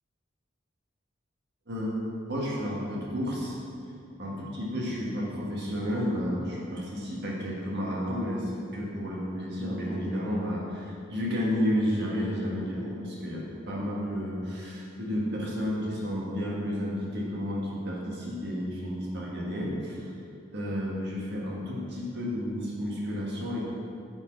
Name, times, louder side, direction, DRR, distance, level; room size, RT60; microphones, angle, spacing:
voice 1, 1.7-2.0 2.3-3.6 4.2-20.1 20.5-23.6, equal, 60° right, -4 dB, 1.5 m, -31 dB
7.9 x 4.5 x 4.5 m, 2.4 s
head